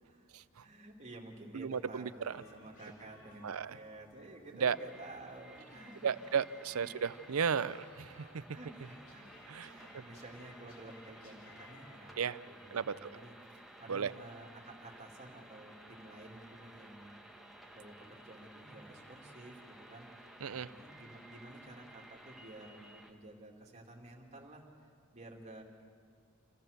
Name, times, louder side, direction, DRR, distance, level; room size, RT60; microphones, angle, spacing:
voice 1, 0.6-6.3 6.7-6.9 8.4-17.1 17.7-20.1 20.5-24.7 25.1-25.6, right 2 dB, 35° right, -1 dB, 2.7 m, -52 dB
voice 2, 1.5-2.3 3.4-3.8 4.6-4.8 6.0-8.4 9.5-10.0 12.2-12.4 12.7-12.9 13.9-14.1 20.4-20.7, right 6 dB, 80° right, 15 dB, 0.5 m, -34 dB
sound 1, 2.3-12.0, left 2 dB, 90° left, 5.0 m, -61 dB
sound 2, 4.6-23.1, right 1 dB, ahead, 1.6 m, -55 dB
28.5 x 15.5 x 6.7 m, 2.1 s
head